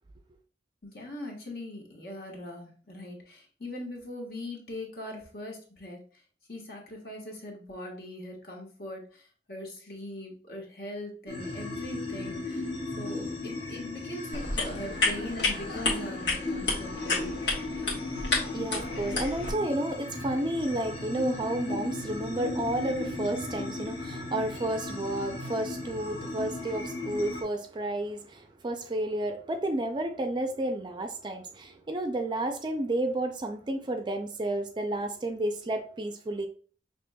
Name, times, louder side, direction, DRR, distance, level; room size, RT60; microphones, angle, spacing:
voice 1, 0.8-6.2 6.5-12.7 13.0-17.3, left 1 dB, 55° left, 1.2 m, -41 dB
sound 1, 11.3-27.4, left 2 dB, 30° left, 0.9 m, -36 dB
sound 2, 14.3-19.5, left 3 dB, 80° left, 1.3 m, -31 dB
voice 2, 18.3-36.5, right 1 dB, 25° right, 0.4 m, -31 dB
5.9 x 3.0 x 2.2 m
head